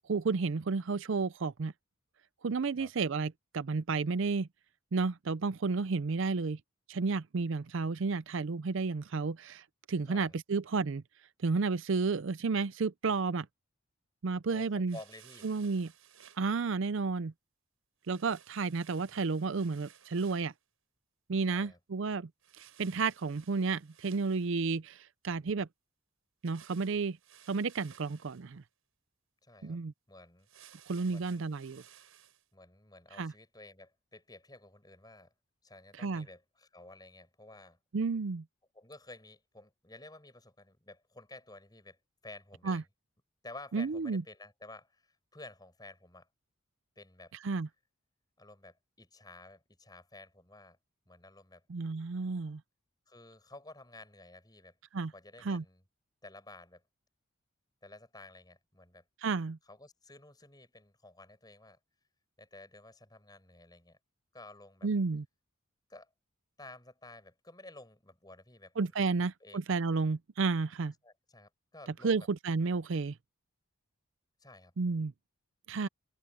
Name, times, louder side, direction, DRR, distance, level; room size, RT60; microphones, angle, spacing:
voice 1, 0.1-1.7 2.4-4.5 4.9-6.6 6.9-11.0 11.4-13.5 14.2-15.0 15.4-15.9 16.4-17.3 18.1-20.5 21.3-22.3 22.6-25.7 26.4-27.2 27.5-28.6 29.6-29.9 30.9-31.8 33.2-33.3 36.0-36.2 37.9-38.4 42.7-42.8 43.7-44.2 47.4-47.7 51.7-52.6 54.9-55.1 55.5-55.6 59.2-59.6 64.8-65.2 68.8-70.9 72.0-73.1 74.8-75.1 75.7-75.9, right 4 dB, 60° right, 0.5 m, -32 dB
voice 2, 10.1-10.4 14.5-15.5 21.5-21.8 29.4-29.8 30.1-30.8 31.1-31.5 32.5-35.3 35.6-37.8 38.7-42.9 43.4-46.3 47.0-47.3 48.4-50.8 51.1-51.7 53.1-54.8 55.1-55.8 56.2-56.8 57.8-59.0 59.6-61.8 62.4-64.0 64.3-64.9 65.9-66.1 66.6-69.6 71.0-72.3 74.4-74.7, left 2 dB, 20° left, 7.5 m, -53 dB
sound 1, 14.9-16.4 18.0-20.5 22.4-24.7 26.4-28.5 30.4-32.4, right 9 dB, 80° right, 5.8 m, -58 dB
head